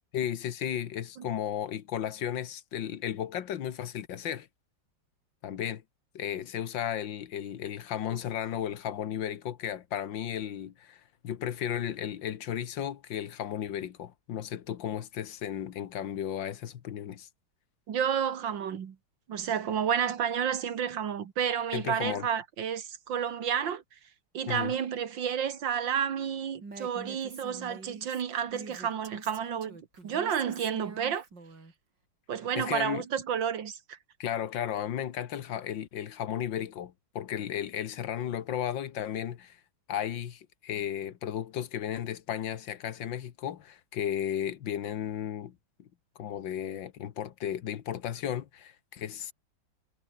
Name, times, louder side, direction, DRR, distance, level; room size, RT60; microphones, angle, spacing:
voice 1, 0.1-4.5 5.4-5.8 6.2-17.3 21.7-22.3 24.5-24.7 32.6-33.0 34.2-39.6 39.9-45.9 46.2-49.3, left 10 dB, 90° left, 1.9 m, -34 dB
voice 2, 17.9-19.0 19.3-23.8 24.3-29.8 30.0-31.3 32.3-34.0, right 8 dB, 85° right, 2.3 m, -31 dB
Female speech woman speaking, 26.6-31.7, right 3 dB, 70° right, 5.4 m, -46 dB
omnidirectional pair, 2.0 m